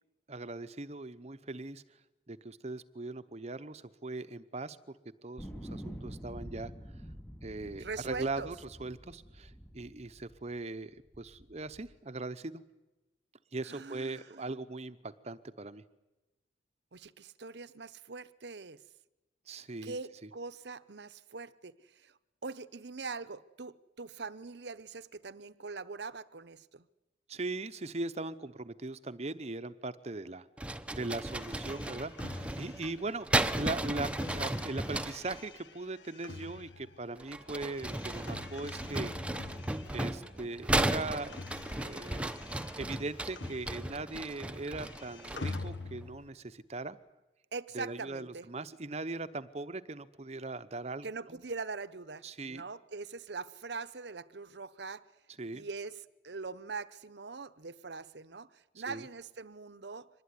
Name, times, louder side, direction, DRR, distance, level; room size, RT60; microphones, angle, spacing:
voice 1, 0.3-1.8 2.3-4.8 5.2-6.7 7.4-12.6 13.5-15.8 19.5-20.0 27.3-39.1 39.9-42.3 42.8-47.0 47.7-51.4 52.2-52.6 55.4-55.7 58.8-59.0, right 2 dB, 35° right, 0.8 m, -40 dB
sound 1, 5.4-10.6 11.1-11.9, equal, 15° left, 2.6 m, -47 dB
voice 2, 7.8-8.5 13.6-14.5 16.9-18.8 19.8-22.1 22.4-26.9 47.5-48.5 51.0-55.0 55.5-60.1, right 4 dB, 65° right, 0.9 m, -42 dB
sound 2, 30.6-35.4 37.2-45.7, right 1 dB, 5° right, 0.8 m, -35 dB
sound 3, 31.2-40.5 40.7-44.2 44.4-46.3, left 3 dB, 75° left, 1.3 m, -47 dB
24.5 x 20.0 x 9.6 m
head